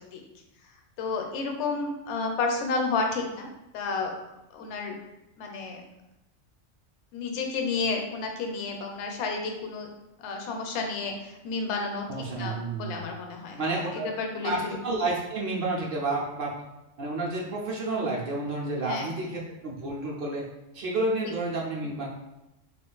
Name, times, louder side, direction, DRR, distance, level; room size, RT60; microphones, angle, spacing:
voice 1, 1.0-3.5 3.7-4.1 4.5-5.0 5.4-5.8 7.1-9.9 10.2-13.6 13.9-14.8 18.8-19.1, left 4 dB, 70° left, 3 dB, 0.8 m, -31 dB
voice 2, 12.1-13.0 13.6-14.1 14.4-16.5 17.0-20.4 20.7-22.1, right 2 dB, 60° right, -3 dB, 0.7 m, -30 dB
2.4 x 2.3 x 3.8 m, 0.94 s
omnidirectional pair, 1.3 m